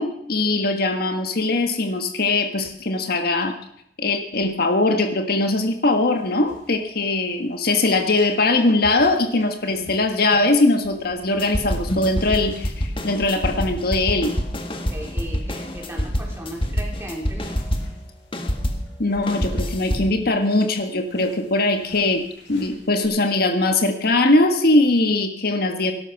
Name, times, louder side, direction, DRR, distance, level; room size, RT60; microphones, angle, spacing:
voice 1, 0.0-3.5 4.0-14.4 19.0-22.2 22.5-25.9, left 2 dB, 60° left, 6 dB, 1.6 m, -21 dB
sound 1, 5.9-23.1, equal, 85° left, 6.8 m, -43 dB
sound 2, 11.4-18.0 18.3-20.2, equal, 30° left, 1.9 m, -26 dB
voice 2, 14.7-17.7, equal, 15° right, 0 dB, 4.0 m, -36 dB
18.5 x 12.0 x 6.0 m, 0.72 s
head